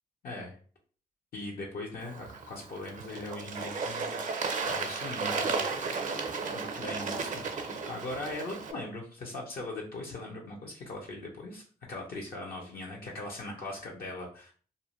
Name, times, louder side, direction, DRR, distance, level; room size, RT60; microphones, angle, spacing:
voice 1, 0.2-0.6 1.3-4.1 4.6-5.7 6.0-14.5, left 2 dB, 65° left, -2 dB, 0.7 m, -40 dB
Bird / Water, 2.0-8.7, right 4 dB, 50° right, 0.5 m, -34 dB
2.5 x 2.1 x 2.9 m, 0.41 s
supercardioid pair, 55°, 16 cm